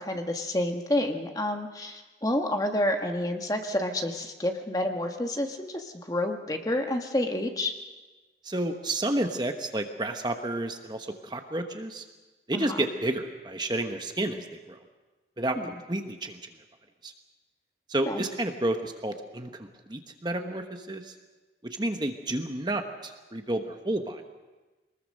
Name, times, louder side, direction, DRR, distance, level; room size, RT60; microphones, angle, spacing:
voice 1, 0.0-7.7 12.5-12.9 15.6-15.7 18.0-18.2, left 1 dB, 20° left, 4 dB, 1.4 m, -29 dB
voice 2, 8.4-12.0 12.5-14.8 15.4-15.6 15.9-16.4 17.0-17.1 17.9-21.1 21.6-24.3, right 1 dB, 25° right, 6 dB, 1.1 m, -31 dB
23.0 x 20.0 x 6.5 m, 1.2 s
head